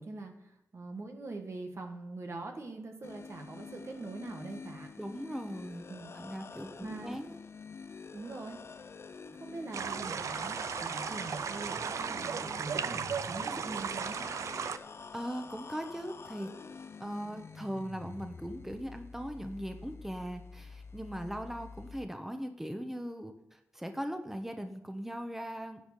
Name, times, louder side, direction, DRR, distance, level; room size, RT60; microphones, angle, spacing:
voice 1, 0.0-4.9 5.9-6.1 6.8-7.2 8.1-8.6 9.2-14.3, right 3 dB, 60° right, 3 dB, 1.6 m, -43 dB
sound 1, 3.0-22.1, left 5 dB, 55° left, 0.5 m, -48 dB
voice 2, 5.0-5.8 6.1-7.4 15.1-16.5 17.0-25.8, equal, 5° right, 6 dB, 1.1 m, -39 dB
sound 2, 9.7-14.8, right 6 dB, 85° right, 0.5 m, -36 dB
10.0 x 5.0 x 7.4 m, 0.83 s
cardioid pair, 55°, 5 cm